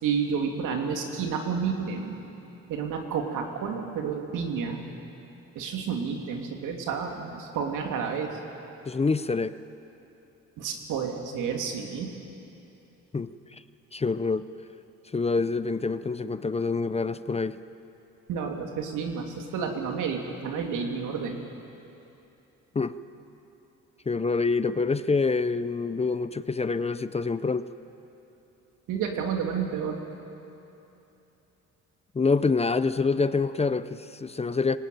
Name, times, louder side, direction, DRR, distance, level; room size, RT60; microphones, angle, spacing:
voice 1, 0.0-2.2 2.7-4.8 5.5-8.4 10.6-12.1 18.3-21.4 28.9-30.0, right 6 dB, 90° right, 2 dB, 2.8 m, -30 dB
voice 2, 8.9-9.6 13.1-13.3 13.9-14.5 15.1-17.6 22.7-23.0 24.1-27.7 32.1-34.8, left 4 dB, 20° left, 13 dB, 0.6 m, -26 dB
22.5 x 19.0 x 9.2 m, 2.9 s
cardioid pair, 90°, 30 cm